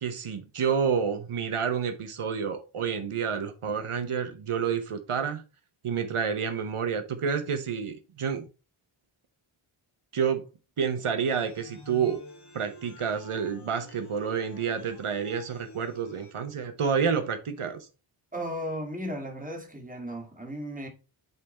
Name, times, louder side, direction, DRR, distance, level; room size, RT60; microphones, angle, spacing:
voice 1, 0.0-5.4 5.8-8.5 10.1-10.4 10.8-12.2 12.5-17.9, right 6 dB, 85° right, 0.9 m, -29 dB
sound 1, 11.3-16.3, left 1 dB, 55° left, 1.6 m, -49 dB
voice 2, 18.3-20.9, equal, 15° right, 1.9 m, -35 dB
8.2 x 3.6 x 4.1 m
wide cardioid pair, 80°, 50 cm